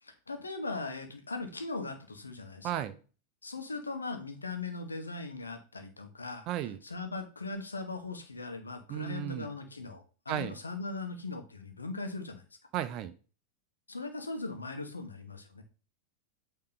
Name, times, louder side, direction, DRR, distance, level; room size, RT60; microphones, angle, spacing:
voice 1, 0.0-2.8 3.4-6.5 6.8-12.4 13.9-15.6, left 3 dB, 75° left, 7 dB, 1.1 m, -39 dB
voice 2, 2.6-2.9 6.5-6.8 8.9-9.5 10.3-10.6 12.7-13.1, right 11 dB, 40° right, 11 dB, 0.7 m, -34 dB
8.5 x 3.1 x 3.9 m, 0.36 s
figure-of-eight pair, 90°, 0 cm